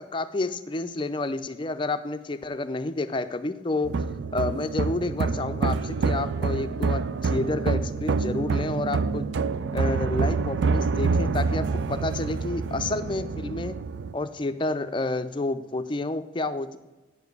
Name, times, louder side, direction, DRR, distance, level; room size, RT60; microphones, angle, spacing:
voice 1, 0.0-3.9 4.3-9.3 9.7-13.8 14.1-16.8, left 2 dB, 25° left, 11 dB, 0.4 m, -30 dB
sound 1, 3.8-14.1, right 4 dB, 70° right, 0.4 m, -27 dB
8.3 x 7.1 x 8.0 m, 1.1 s
head